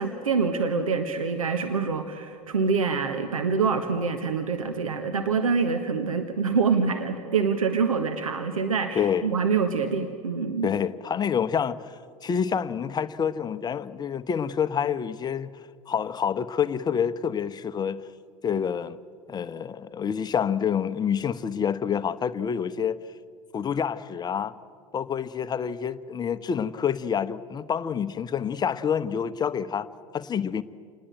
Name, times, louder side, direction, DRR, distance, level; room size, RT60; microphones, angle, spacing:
voice 1, 0.0-10.7, right 5 dB, 80° right, 1.5 m, -25 dB
voice 2, 8.9-9.3 10.6-11.8 12.2-15.6 15.9-18.0 18.4-19.0 19.3-23.0 23.5-24.5 24.9-29.9 30.1-30.6, left 7 dB, 25° left, 0.9 m, -27 dB
28.0 x 20.0 x 9.0 m
figure-of-eight pair, 80°, 17 cm